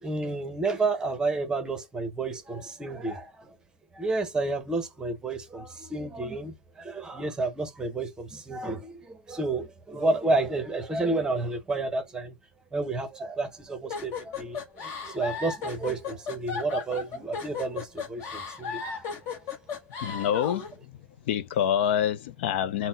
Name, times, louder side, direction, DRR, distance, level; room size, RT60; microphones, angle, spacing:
voice 1, 0.0-3.5 3.9-12.3 12.7-19.1, right 3 dB, 10° right, 0.8 m, -30 dB
sound 1, 13.9-20.7, left 6 dB, 40° left, 1.2 m, -35 dB
voice 2, 20.0-20.7 21.3-22.9, left 9 dB, 60° left, 0.5 m, -26 dB
4.0 x 2.1 x 3.9 m
hypercardioid pair, 135°, 7 cm